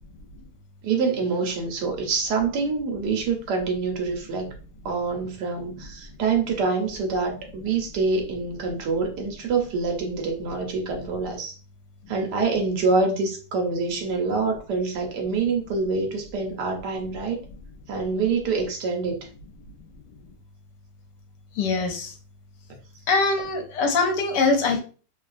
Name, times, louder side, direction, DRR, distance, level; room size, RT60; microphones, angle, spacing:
voice 1, 0.8-4.5 4.8-11.5 12.1-17.4 17.9-19.2, right 4 dB, 70° right, 2 dB, 1.3 m, -26 dB
voice 2, 21.6-22.1 23.1-24.8, left 3 dB, 75° left, 5 dB, 1.3 m, -22 dB
3.2 x 2.3 x 2.4 m, 0.36 s
omnidirectional pair, 1.9 m